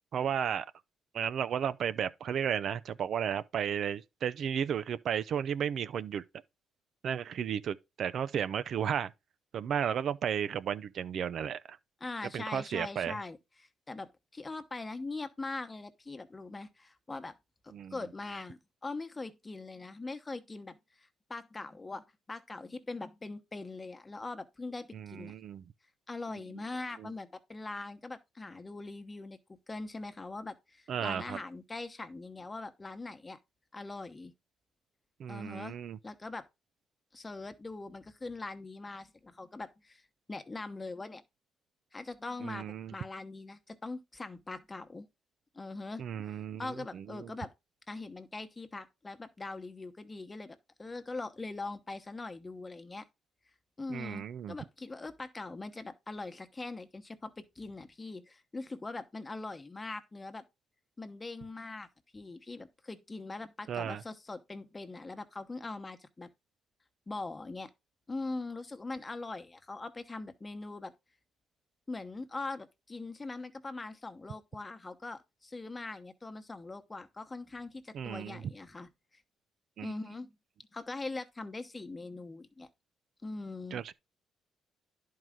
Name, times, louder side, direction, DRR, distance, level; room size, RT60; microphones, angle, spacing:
voice 1, 0.1-0.7 1.1-6.2 7.0-9.1 9.5-11.8 12.3-13.2 17.7-18.0 24.9-25.6 27.0-27.1 30.9-31.4 35.2-36.0 42.4-42.9 46.0-47.3 53.9-54.6 63.7-64.0 77.9-78.5 79.8-79.9 83.7-83.9, right 8 dB, 65° right, 0.5 m, -34 dB
voice 2, 12.0-13.4 13.9-17.4 17.6-25.3 26.1-33.4 33.7-34.3 35.3-35.8 36.0-36.5 37.1-40.0 40.3-41.2 41.9-45.1 45.5-46.0 46.6-47.5 47.9-53.0 53.8-60.4 61.0-61.9 62.1-66.3 67.1-67.7 68.1-70.9 71.9-79.2 79.8-80.3 80.7-82.7 83.2-83.8, left 3 dB, 25° left, 1.1 m, -42 dB
10.5 x 4.7 x 3.7 m
cardioid pair, 90°, 0 cm